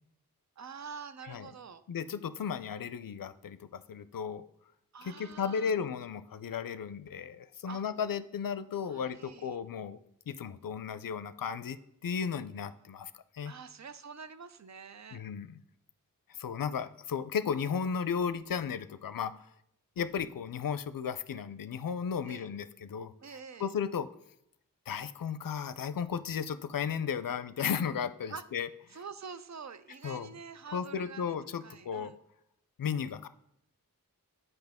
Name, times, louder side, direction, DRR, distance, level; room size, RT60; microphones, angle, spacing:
voice 1, 0.6-1.8 4.9-5.7 7.7-7.8 8.8-9.6 13.4-15.2 22.2-22.5 23.2-23.7 28.3-28.4 28.9-31.3 31.6-32.2, right 5 dB, 50° right, 13 dB, 0.5 m, -46 dB
voice 2, 1.9-4.4 5.0-10.0 10.3-13.5 15.1-15.6 16.3-19.5 20.0-23.1 23.6-24.1 24.9-28.7 30.0-30.3 30.7-32.1 32.8-33.3, left 7 dB, 70° left, 14 dB, 0.5 m, -35 dB
8.0 x 5.5 x 3.5 m, 0.77 s
wide cardioid pair, 55°, 35 cm